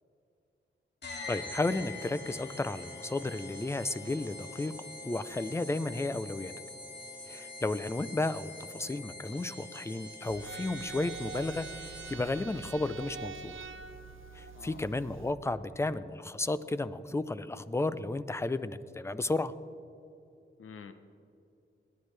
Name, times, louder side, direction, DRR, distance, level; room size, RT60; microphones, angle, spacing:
sound 1, 1.0-12.4, left 2 dB, 55° left, 1.8 m, -45 dB
voice 1, 1.3-4.8 5.0-6.5 7.3-13.5 14.3-19.5, left 2 dB, 15° left, 14 dB, 0.4 m, -33 dB
sound 2, 10.3-15.3, right 5 dB, 75° right, 0.7 m, -45 dB
voice 2, 12.2-12.5 14.5-14.8 20.6-20.9, left 6 dB, 85° left, 9 dB, 0.8 m, -49 dB
29.5 x 10.5 x 3.3 m, 2.7 s
wide cardioid pair, 175°, 21 cm